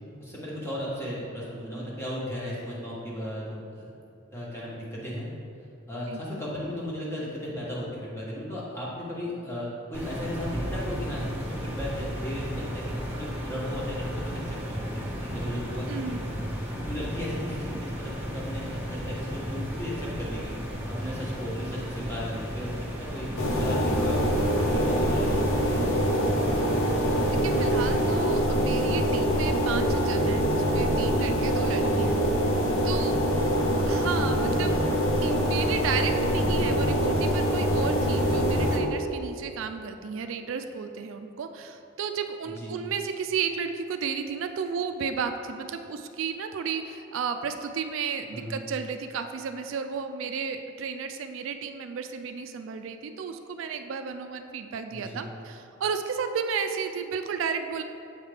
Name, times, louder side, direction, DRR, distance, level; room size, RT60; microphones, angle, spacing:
voice 1, 0.2-3.9 4.3-5.3 5.9-16.1 16.8-20.5 20.9-24.3 24.5-26.4 31.6-31.9 33.5-33.7 42.6-42.7 48.3-48.6 54.9-55.2, equal, 15° left, -7 dB, 1.2 m, -36 dB
sound 1, 9.9-28.1, equal, 10° right, 1.1 m, -34 dB
voice 2, 15.9-16.2 27.4-32.2 32.5-32.6 32.8-33.2 33.9-34.7 35.2-57.8, right 6 dB, 75° right, 7 dB, 0.3 m, -33 dB
sound 2, 23.4-38.8, equal, 85° left, 0.8 m, -24 dB
7.2 x 4.8 x 3.4 m, 2.7 s
head